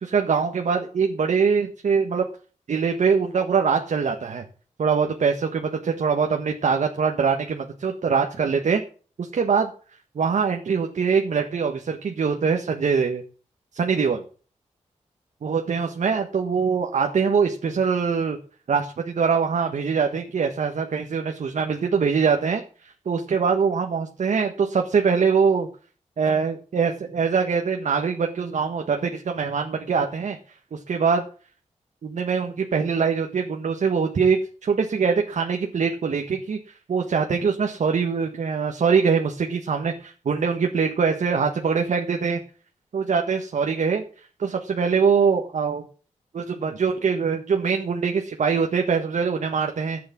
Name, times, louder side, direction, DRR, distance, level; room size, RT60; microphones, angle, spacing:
voice 1, 0.0-2.2 2.7-4.4 4.8-8.8 9.2-9.7 10.1-13.2 13.7-14.2 15.4-18.4 18.7-25.7 26.2-30.4 30.7-31.2 32.0-36.6 36.9-42.4 42.9-44.0 44.4-45.8 46.3-50.0, right 5 dB, 75° right, 3 dB, 1.5 m, -23 dB
14.5 x 8.6 x 7.3 m, 0.40 s
wide cardioid pair, 85°, 13 cm